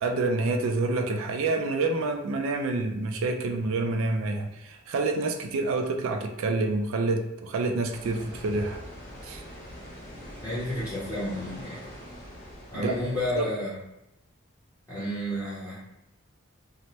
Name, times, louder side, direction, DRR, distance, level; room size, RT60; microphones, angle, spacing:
voice 1, 0.0-8.8 9.2-9.4 12.7-12.9 13.3-13.5, right 3 dB, 75° right, 4 dB, 0.3 m, -28 dB
sound 1, 7.9-13.4, equal, 40° left, 1.2 m, -44 dB
voice 2, 10.4-11.8 12.7-13.7 14.9-15.8, left 1 dB, 15° left, -11 dB, 0.7 m, -31 dB
2.8 x 2.1 x 3.0 m, 0.88 s
head